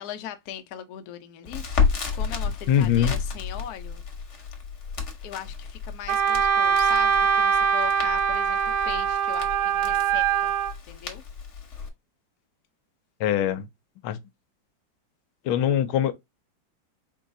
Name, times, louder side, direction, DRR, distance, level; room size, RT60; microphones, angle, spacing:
voice 1, 0.0-4.0 5.2-10.5 10.9-11.2, left 10 dB, 65° left, 1.0 m, -40 dB
Crackle, 1.5-11.9, left 5 dB, 45° left, 1.1 m, -32 dB
voice 2, 2.7-3.2 13.2-13.7 14.0-14.2 15.4-16.1, left 10 dB, 90° left, 1.4 m, -22 dB
Wind instrument woodwind instrument, 6.1-10.7, right 7 dB, 90° right, 0.7 m, -23 dB
4.6 x 3.9 x 2.6 m
omnidirectional pair, 2.2 m